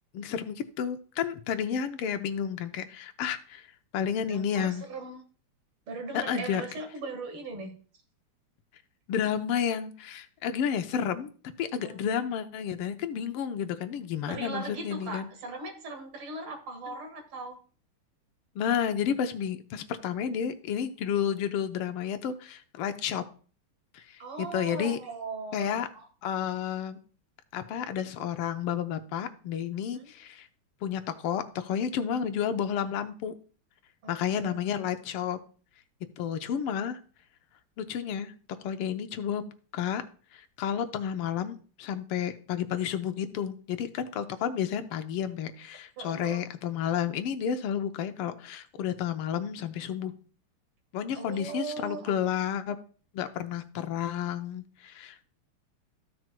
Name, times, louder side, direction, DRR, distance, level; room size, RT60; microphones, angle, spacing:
voice 1, 0.1-3.7 3.9-4.8 6.1-6.6 9.1-11.3 11.6-15.3 18.5-23.2 23.9-24.0 24.4-25.0 25.5-25.9 26.2-27.0 27.5-30.5 30.8-33.3 34.1-35.4 36.2-37.0 37.8-38.3 38.6-40.0 40.3-50.1 50.9-52.8 53.1-55.2, left 8 dB, 85° left, 9 dB, 1.6 m, -31 dB
voice 2, 4.3-5.2 5.9-7.7 11.8-12.0 14.3-17.6 24.2-26.0 29.9-30.1 34.0-34.6 46.0-46.4 51.1-52.0, right 3 dB, 75° right, 4 dB, 2.5 m, -39 dB
14.5 x 6.1 x 2.2 m, 0.40 s
omnidirectional pair, 2.4 m